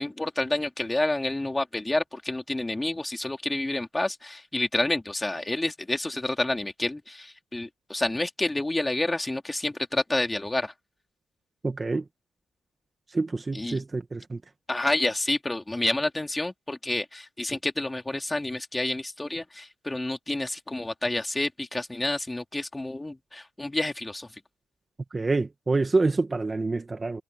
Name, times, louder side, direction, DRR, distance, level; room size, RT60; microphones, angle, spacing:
voice 1, 0.0-10.7 13.5-13.8 14.7-24.3, left 2 dB, 15° left, 3.1 m, -29 dB
voice 2, 11.6-12.0 13.1-14.4 25.1-27.2, right 3 dB, 25° right, 1.8 m, -27 dB
cardioid pair, 90°, 0 cm